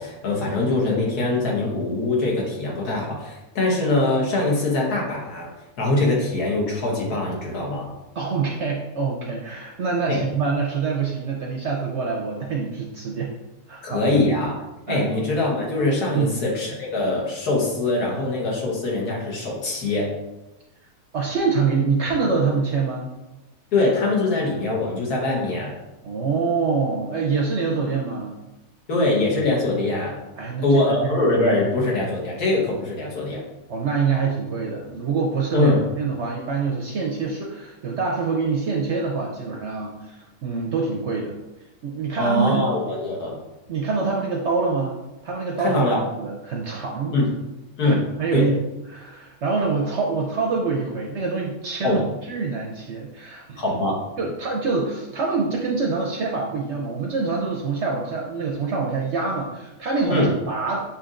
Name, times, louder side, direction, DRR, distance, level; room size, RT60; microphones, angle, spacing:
voice 1, 0.0-5.5 5.8-7.9 10.1-10.2 13.8-14.5 14.9-20.1 23.7-25.7 28.9-30.1 30.6-33.4 35.5-35.8 42.2-43.4 45.6-46.0 47.1-47.3 47.8-48.0 48.3-48.5 51.8-52.0 53.6-54.0 60.1-60.3, left 2 dB, 75° left, -3 dB, 1.7 m, -23 dB
voice 2, 8.1-13.3 13.7-14.1 14.9-15.1 16.1-16.3 21.1-23.1 26.0-28.4 30.4-30.8 31.1-31.2 33.7-41.4 41.8-42.6 43.7-45.0 45.2-45.9 46.2-47.1 47.8-48.6 48.9-53.6 54.2-60.8, right 4 dB, 60° right, -1 dB, 0.7 m, -25 dB
7.5 x 2.8 x 2.5 m, 1.0 s
omnidirectional pair, 1.7 m